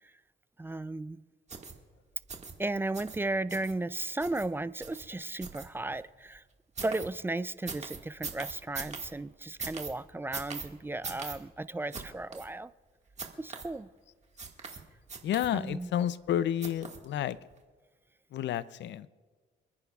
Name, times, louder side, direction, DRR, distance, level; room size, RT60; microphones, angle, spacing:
voice 1, 0.6-1.2 2.6-6.4 6.8-12.7 13.4-13.9 15.5-15.9, right 2 dB, 10° right, 16 dB, 0.3 m, -35 dB
sound 1, 1.5-1.7 2.3-2.5 2.9-3.2 3.5-3.7 4.2-4.5 4.8-5.0 5.4-6.0 6.8-7.1 7.7-9.1 9.6-9.9 10.3-10.7 11.0-11.4 11.9-12.0 12.3-12.5 13.2-13.7 14.4-14.8 15.1-15.7 16.6-17.1 17.5-17.6, right 4 dB, 35° right, 1.8 m, -40 dB
voice 2, 15.2-17.4 18.3-19.1, left 10 dB, 65° left, 17 dB, 0.5 m, -30 dB
28.0 x 9.8 x 2.4 m, 1.4 s
cardioid pair, 90°, 20 cm